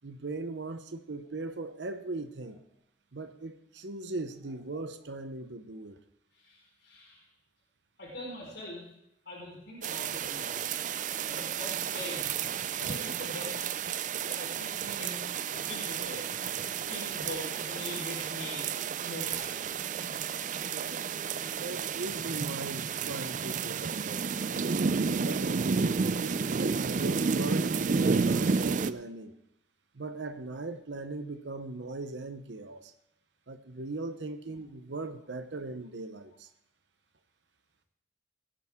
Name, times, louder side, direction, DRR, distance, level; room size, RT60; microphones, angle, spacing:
voice 1, 0.0-2.6 3.1-6.0 20.7-21.0 21.6-25.6 26.2-29.3 29.9-32.9 33.5-36.5, right 2 dB, 80° right, 8 dB, 0.9 m, -39 dB
voice 2, 6.3-7.2 8.0-8.9 9.2-10.6 11.3-12.3 12.8-13.5 14.2-15.2 15.5-16.3 16.9-18.8 19.0-19.6, left 1 dB, 75° left, -4 dB, 4.8 m, -42 dB
sound 1, 9.8-28.9, right 5 dB, 45° right, 0.4 m, -31 dB
17.5 x 10.0 x 3.7 m, 0.79 s
head